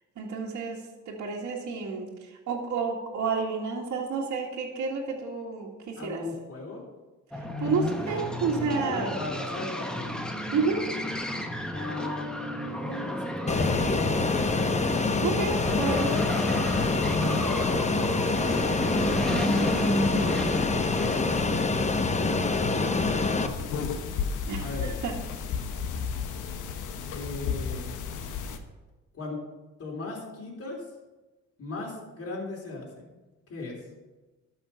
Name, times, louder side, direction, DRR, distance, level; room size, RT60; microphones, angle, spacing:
voice 1, 0.2-6.2 7.3-9.2 9.6-9.7 10.5-10.9 15.2-16.2 19.3-19.7 24.5-25.2, right 5 dB, 65° right, -3 dB, 1.9 m, -30 dB
voice 2, 5.9-6.8 8.9-10.2 11.7-14.6 16.9-18.8 19.8-23.7 24.6-25.0 27.1-27.9 29.1-29.4 29.8-30.9 31.6-33.1 33.5-33.8, left 3 dB, 50° left, -2 dB, 3.6 m, -38 dB
sound 1, 7.3-21.5, equal, 5° left, 1.1 m, -32 dB
Fixed-wing aircraft airplane, 13.5-23.5, left 3 dB, 25° left, 0.9 m, -26 dB
sound 2, 23.5-28.6, left 6 dB, 85° left, 1.0 m, -33 dB
12.5 x 5.8 x 5.6 m, 1.2 s
cardioid pair, 90°, 30 cm